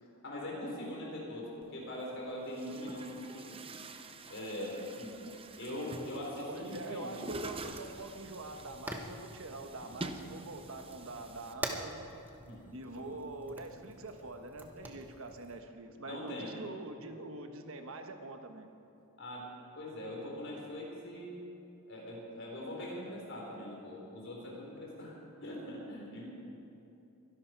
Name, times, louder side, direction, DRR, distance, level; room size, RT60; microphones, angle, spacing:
voice 1, 0.2-3.6 4.3-5.1 5.6-7.2 12.4-12.6 12.9-13.1 16.0-16.6 19.2-19.5 19.7-21.5 21.9-25.1 25.4-26.3, left 1 dB, 60° left, -3 dB, 4.4 m, -42 dB
Chatter / Gurgling / Tap, 1.6-1.7 2.4-11.5, right 2 dB, 25° right, 0.7 m, -47 dB
voice 2, 6.5-12.1 12.7-18.7, right 2 dB, 65° right, 6 dB, 1.2 m, -44 dB
Fire, 7.2-15.6, right 1 dB, 10° right, 1.0 m, -46 dB
23.0 x 11.5 x 4.7 m, 2.8 s
head